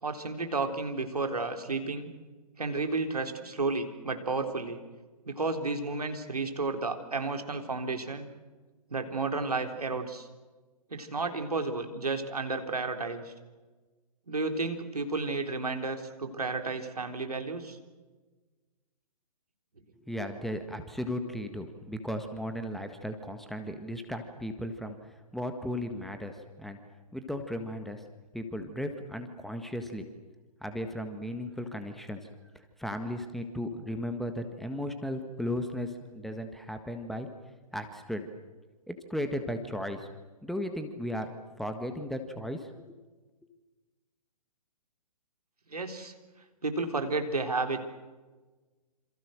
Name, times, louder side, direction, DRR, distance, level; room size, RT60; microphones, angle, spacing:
voice 1, 0.0-2.1 2.6-4.8 5.3-8.3 8.9-10.3 10.9-13.3 14.3-17.8 45.7-46.1 46.6-47.8, right 3 dB, 70° right, 6 dB, 3.8 m, -32 dB
voice 2, 20.0-25.0 25.3-26.8 27.1-28.0 28.3-30.1 30.6-32.3 32.5-37.3 37.7-38.3 38.9-40.1 40.4-43.0, left 1 dB, ahead, 7 dB, 1.6 m, -36 dB
27.5 x 27.5 x 6.6 m, 1.3 s
figure-of-eight pair, 125°, 20 cm